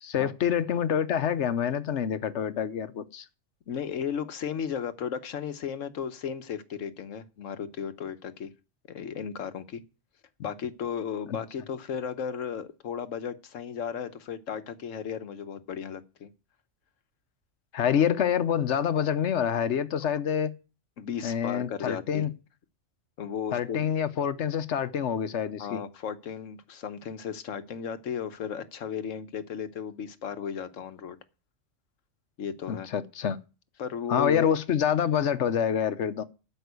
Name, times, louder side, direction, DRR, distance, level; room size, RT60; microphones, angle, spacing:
voice 1, 0.0-3.2 17.7-20.5 21.2-22.3 23.5-25.8 32.7-33.4 34.1-36.2, left 8 dB, 65° left, 1.1 m, -27 dB
voice 2, 3.7-8.5 8.9-9.8 10.4-16.3 21.0-22.2 23.2-23.9 25.6-31.2 32.4-32.9 33.8-34.5, left 7 dB, 85° left, 1.3 m, -35 dB
12.5 x 5.4 x 8.2 m
omnidirectional pair, 1.3 m